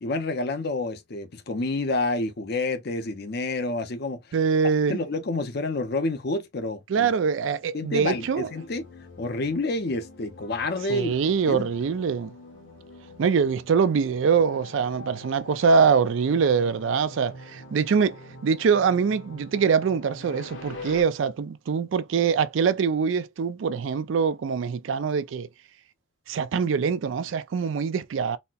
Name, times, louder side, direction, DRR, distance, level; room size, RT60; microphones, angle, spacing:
voice 1, 0.0-4.2 4.9-7.1 7.7-8.8 9.2-11.1 11.5-11.7, left 2 dB, 55° left, 0.6 m, -28 dB
voice 2, 4.3-5.0 6.9-8.5 10.9-12.3 13.2-25.5 26.3-28.4, right 6 dB, 75° right, 0.4 m, -23 dB
sound 1, 8.0-21.0, left 2 dB, 80° left, 1.2 m, -45 dB
4.1 x 2.1 x 2.4 m
head